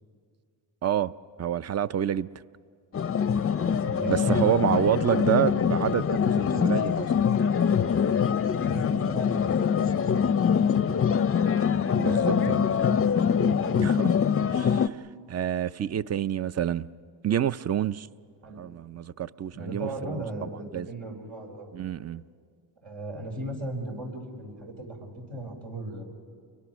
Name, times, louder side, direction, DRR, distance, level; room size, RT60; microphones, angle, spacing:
voice 1, 0.8-1.1 1.4-2.3 4.1-7.1 12.0-12.6 13.8-14.1 14.5-15.0 15.3-16.9 17.2-18.1 18.6-20.9 21.7-22.2, right 10 dB, 35° right, 0.5 m, -28 dB
sound 1, 2.9-14.9, left 7 dB, 30° left, 0.6 m, -24 dB
voice 2, 3.6-5.6 8.6-13.0 13.4-13.8 18.4-18.6 19.5-21.7 22.8-26.0, right 1 dB, 70° right, 5.3 m, -37 dB
29.0 x 23.0 x 6.2 m
cardioid pair, 80°, 46 cm